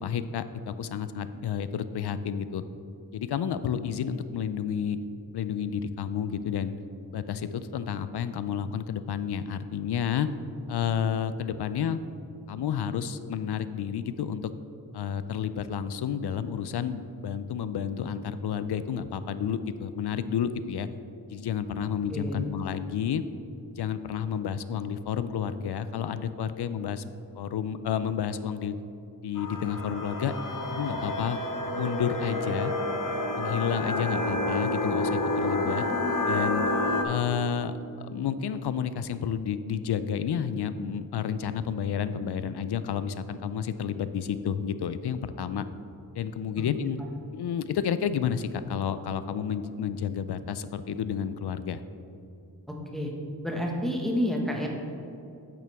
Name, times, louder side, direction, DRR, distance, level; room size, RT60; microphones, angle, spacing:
voice 1, 0.0-2.6 3.1-5.0 5.3-6.8 7.1-10.3 10.7-12.0 12.5-14.5 14.9-20.9 21.3-23.2 23.7-27.0 27.4-28.8 29.2-30.3 30.7-31.4 31.7-32.7 33.4-35.8 36.3-36.7 37.0-45.6 46.1-47.0 47.3-51.8, left 8 dB, 85° left, 13 dB, 0.5 m, -30 dB
voice 2, 22.1-22.4 46.6-46.9 52.7-53.1 53.4-54.7, equal, ahead, -1 dB, 1.5 m, -30 dB
sound 1, 29.4-37.0, left 1 dB, 55° left, 1.0 m, -29 dB
9.0 x 8.5 x 3.5 m, 2.7 s
cardioid pair, 50°, 39 cm